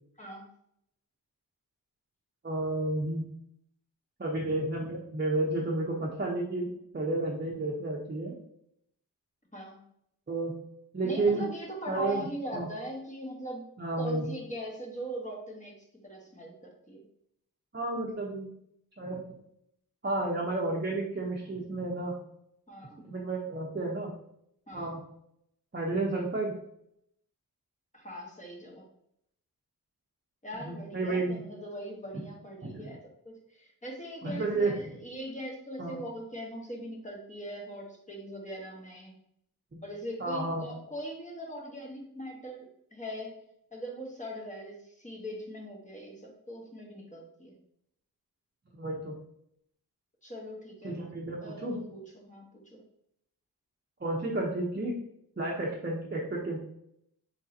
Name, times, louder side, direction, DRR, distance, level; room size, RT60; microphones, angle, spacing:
voice 1, 2.4-3.3 4.2-8.3 10.3-10.6 10.9-11.4 11.9-12.3 12.5-12.7 13.8-14.2 17.7-18.5 19.0-19.2 20.0-22.2 23.0-24.2 24.7-25.0 25.7-26.5 30.7-31.4 32.1-32.2 32.6-32.9 34.2-34.7 35.8-36.0 39.7-39.8 40.2-40.7 48.8-49.1 50.8-51.8 54.0-55.0 55.4-56.6, right 2 dB, 30° right, -4 dB, 0.9 m, -31 dB
voice 2, 11.0-13.6 14.0-15.7 16.0-17.0 22.7-23.0 24.7-24.9 27.9-28.8 30.4-33.0 33.2-39.1 39.8-43.4 43.7-47.5 50.2-51.0 51.4-52.8, equal, 20° left, -1 dB, 1.3 m, -41 dB
3.8 x 3.8 x 2.8 m, 0.73 s
cardioid pair, 55°, 36 cm